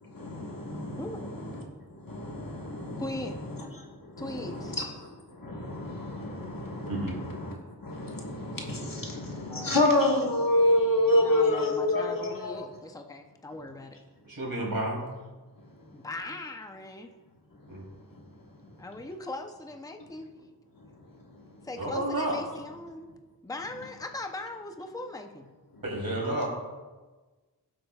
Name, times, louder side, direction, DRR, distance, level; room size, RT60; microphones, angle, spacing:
voice 1, 0.0-12.8 15.6-16.1 17.5-18.9 20.7-21.7 25.7-25.8, left 1 dB, 60° left, -1 dB, 1.7 m, -30 dB
voice 2, 1.0-1.3 3.0-3.4 4.2-4.7 9.5-9.8 11.2-14.0 15.9-17.1 18.8-20.3 21.6-23.1 23.4-25.5, left 2 dB, 10° left, 5 dB, 0.7 m, -39 dB
voice 3, 14.2-15.0 17.7-17.8 21.8-22.4 25.8-26.5, right 1 dB, 65° right, -3 dB, 3.4 m, -30 dB
17.0 x 7.7 x 2.4 m, 1.3 s
wide cardioid pair, 75°, 38 cm